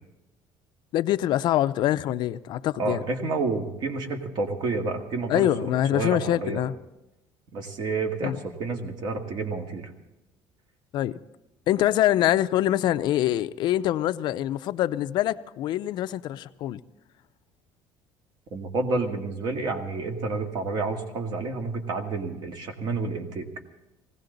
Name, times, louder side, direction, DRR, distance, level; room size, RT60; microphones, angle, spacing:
voice 1, 0.9-3.0 5.3-6.7 8.2-8.4 10.9-11.2 11.7-16.8, left 13 dB, 55° left, 0.5 m, -24 dB
voice 2, 2.8-6.6 7.5-9.9 18.5-23.5, right 3 dB, 50° right, 1.9 m, -29 dB
19.5 x 16.5 x 3.9 m
cardioid pair, 150°, 9 cm